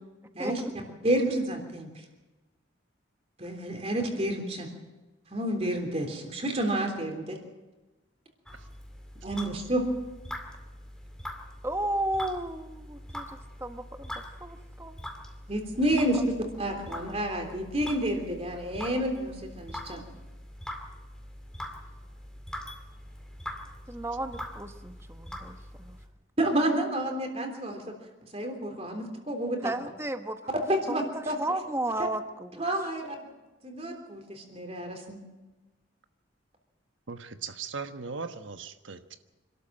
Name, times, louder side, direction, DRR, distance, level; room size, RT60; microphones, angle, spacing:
voice 1, 0.4-0.7 11.6-14.1 14.4-14.9 23.9-26.0 29.6-30.4 30.9-32.6, right 1 dB, 15° right, 7 dB, 1.1 m, -34 dB
voice 2, 1.0-1.9 3.4-4.7 5.3-7.4 9.2-9.9 15.5-20.0 26.4-27.9 28.3-29.7 30.7-31.4 32.6-33.2 33.6-35.2, right 1 dB, 30° right, 3 dB, 3.4 m, -29 dB
sound 1, 8.5-26.1, left 1 dB, 5° left, 2.3 m, -43 dB
voice 3, 37.1-39.2, right 5 dB, 80° right, 8 dB, 1.2 m, -38 dB
26.5 x 13.0 x 7.7 m, 1.1 s
head